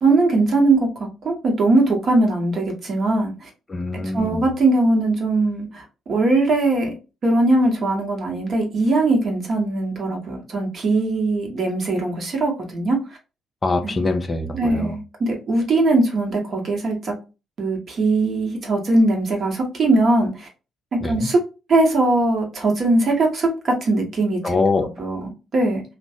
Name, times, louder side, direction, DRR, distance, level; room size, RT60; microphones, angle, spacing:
voice 1, 0.0-3.5 3.9-6.9 7.2-13.0 13.8-14.0 14.5-17.1 17.6-20.5 20.9-21.4 21.7-24.4 25.0-25.8, right 2 dB, 50° right, 1.0 m, -20 dB
voice 2, 3.7-4.4 13.6-14.9 21.0-21.3 24.4-24.9, left 3 dB, 30° left, 0.5 m, -23 dB
3.0 x 2.2 x 2.7 m
figure-of-eight pair, 45°, 0 cm